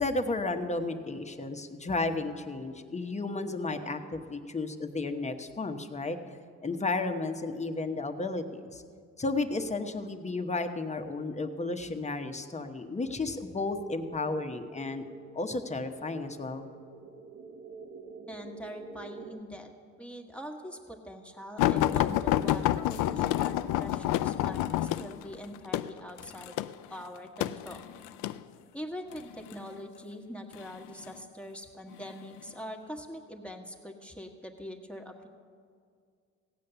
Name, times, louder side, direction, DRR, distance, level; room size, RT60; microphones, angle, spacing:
voice 1, 0.0-6.2 6.6-8.8 9.2-15.0 15.3-16.7, left 3 dB, 25° left, 7 dB, 1.0 m, -33 dB
sound 1, 13.1-19.4, right 4 dB, 45° right, 1.2 m, -48 dB
voice 2, 18.3-19.7 20.0-26.6 26.9-27.8 28.7-35.3, equal, 5° left, 2 dB, 1.4 m, -43 dB
sound 2, 21.6-28.4 29.2-29.6 30.5-31.2 31.9-32.1 32.5-32.6, left 13 dB, 90° left, 0.5 m, -28 dB
16.5 x 8.5 x 6.8 m, 2.2 s
cardioid pair, 90°, 30 cm